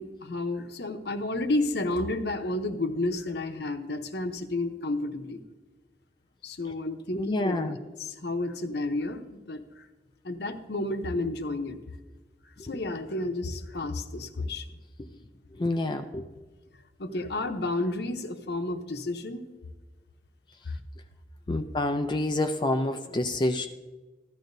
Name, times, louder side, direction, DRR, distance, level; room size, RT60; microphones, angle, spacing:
voice 1, 0.0-5.4 6.4-7.7 8.0-9.8 10.2-11.8 12.6-14.7 17.0-19.5 20.6-20.8, left 2 dB, 65° left, 7 dB, 0.8 m, -31 dB
voice 2, 7.1-7.8 15.0-15.1 15.6-16.2 21.5-23.7, left 2 dB, 25° left, 6 dB, 0.4 m, -28 dB
15.0 x 11.5 x 2.6 m, 1.3 s
head